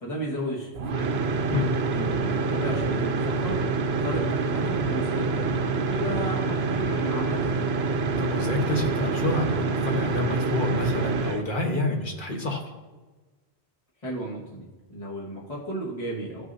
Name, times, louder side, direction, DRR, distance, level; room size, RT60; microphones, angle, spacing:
voice 1, 0.0-1.3 1.9-3.6 3.9-7.6 14.0-16.5, right 1 dB, 30° left, -5 dB, 1.8 m, -34 dB
sound 1, 0.7-11.4, right 4 dB, 70° right, 0.9 m, -26 dB
voice 2, 8.2-12.6, left 2 dB, 50° left, 0 dB, 1.6 m, -28 dB
16.0 x 6.4 x 2.8 m, 1.2 s
omnidirectional pair, 1.1 m